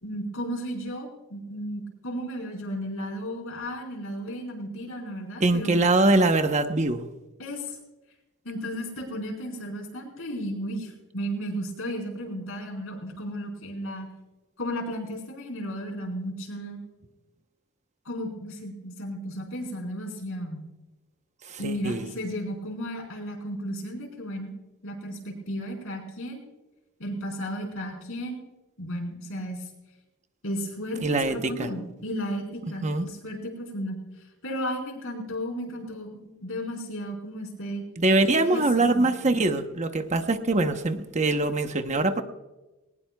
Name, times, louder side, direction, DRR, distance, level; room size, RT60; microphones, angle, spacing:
voice 1, 0.0-5.7 7.4-7.8 8.4-14.1 14.6-16.8 18.0-20.6 21.6-24.5 24.8-26.4 27.0-28.4 28.8-29.6 30.4-34.0 34.4-37.8 38.2-39.1, equal, 65° left, 1 dB, 4.7 m, -34 dB
voice 2, 5.4-7.0 21.5-22.0 31.0-31.7 32.8-33.1 38.0-42.2, right 2 dB, 35° right, 7 dB, 0.9 m, -23 dB
20.5 x 19.5 x 2.3 m, 1.1 s
head